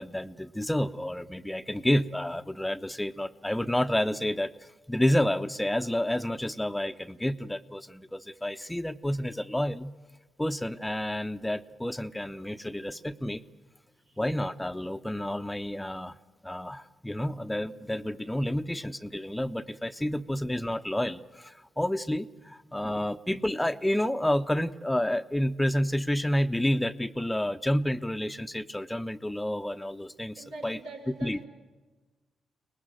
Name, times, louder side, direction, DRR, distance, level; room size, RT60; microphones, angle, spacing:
voice 1, 0.0-9.9 10.4-13.4 14.2-16.2 16.4-30.8 31.2-31.4, left 1 dB, 10° left, 11 dB, 0.9 m, -30 dB
voice 2, 12.4-13.4 14.1-14.2 19.2-19.3 20.0-20.3 22.4-23.0 30.3-31.5, right 3 dB, 80° right, -2 dB, 5.7 m, -48 dB
24.0 x 20.0 x 9.2 m, 1.2 s
hypercardioid pair, 40°, 0 cm